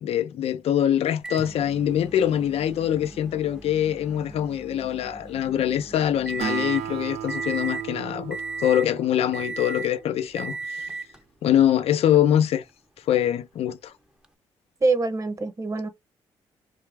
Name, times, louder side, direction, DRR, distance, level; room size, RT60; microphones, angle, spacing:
voice 1, 0.0-10.9 11.4-12.6 13.1-13.9, left 10 dB, 70° left, 0.5 m, -24 dB
Microwave oven, 1.2-6.9 7.3-7.9 8.3-8.9 9.3-10.0 10.4-11.2 12.1-12.2 14.2-14.3, right 3 dB, 5° right, 0.7 m, -36 dB
Acoustic guitar, 6.4-10.1, right 9 dB, 80° right, 0.6 m, -35 dB
voice 2, 14.8-15.9, right 3 dB, 30° right, 1.0 m, -24 dB
3.4 x 2.4 x 3.3 m
supercardioid pair, 55°, 11 cm